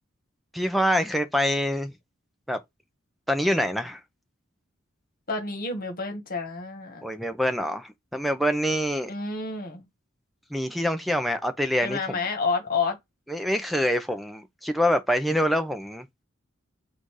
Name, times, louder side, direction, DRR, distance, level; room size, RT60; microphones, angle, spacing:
voice 1, 0.5-1.9 2.5-2.6 3.3-4.0 7.0-9.1 10.5-12.2 13.3-16.1, equal, ahead, 0.6 m, -25 dB
voice 2, 5.3-7.0 9.1-9.9 11.8-13.0, left 4 dB, 45° left, 1.6 m, -29 dB
4.1 x 2.6 x 4.6 m
head